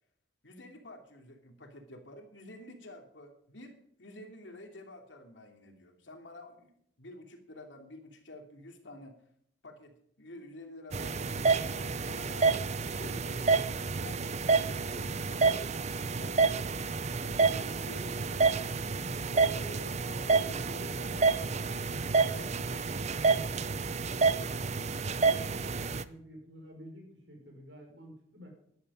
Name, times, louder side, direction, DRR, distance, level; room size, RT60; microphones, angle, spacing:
voice 1, 0.4-6.7 7.0-9.2 9.6-14.4 14.7-15.7 16.2-16.6 17.2-18.4 19.2-21.9 22.2-22.9, left 1 dB, 90° left, 4 dB, 2.9 m, -49 dB
sound 1, 10.9-26.0, right 4 dB, 40° right, 0.6 m, -29 dB
voice 2, 25.8-28.5, equal, 75° right, 1 dB, 5.9 m, -51 dB
12.5 x 11.5 x 5.5 m, 0.68 s
head